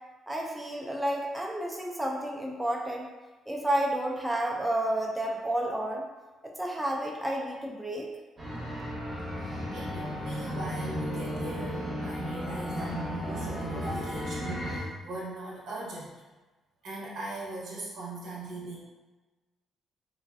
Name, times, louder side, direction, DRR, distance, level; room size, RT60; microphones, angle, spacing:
voice 1, 0.3-3.1 3.5-6.1 6.4-8.1, right 1 dB, 5° right, -1 dB, 0.4 m, -31 dB
sound 1, 8.4-14.8, equal, 30° right, 0.8 m, -34 dB
voice 2, 9.7-16.1 16.8-18.8, right 2 dB, 80° right, -6 dB, 0.8 m, -40 dB
2.5 x 2.3 x 2.2 m, 1.2 s
cardioid pair, 70°, 0 cm